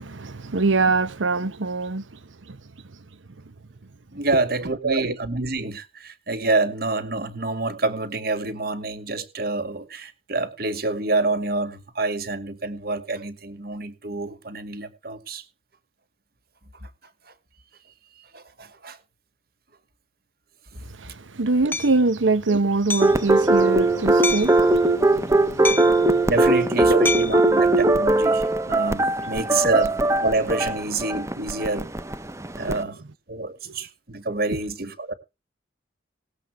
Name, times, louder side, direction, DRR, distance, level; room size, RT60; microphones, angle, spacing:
voice 1, 0.0-2.2 2.5-2.6 4.8-5.1 20.9-26.3 26.9-27.0 32.6-32.8, right 3 dB, 90° right, 1.0 m, -24 dB
voice 2, 4.1-15.4 16.8-16.9 18.3-19.0 21.0-21.1 26.3-29.9 30.2-31.9 32.6-33.0 33.3-35.1, right 3 dB, 55° right, 2.1 m, -27 dB
Hammer, 21.7-21.9 22.9-23.2 24.2-24.6 25.6-26.1 27.0-27.4, left 3 dB, 10° left, 0.7 m, -27 dB
sound 1, 23.0-32.8, right 2 dB, 15° right, 0.8 m, -20 dB
19.0 x 8.1 x 4.7 m
head